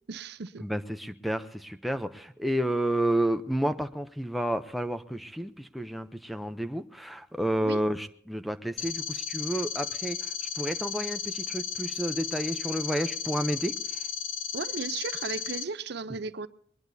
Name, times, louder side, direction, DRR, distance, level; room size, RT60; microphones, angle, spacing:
voice 1, 0.1-0.7 7.6-7.8 14.5-16.5, right 4 dB, 55° right, 0.6 m, -35 dB
voice 2, 0.6-14.0, right 1 dB, ahead, 0.5 m, -31 dB
sound 1, 8.8-15.6, left 9 dB, 90° left, 1.2 m, -34 dB
22.0 x 20.0 x 2.7 m
head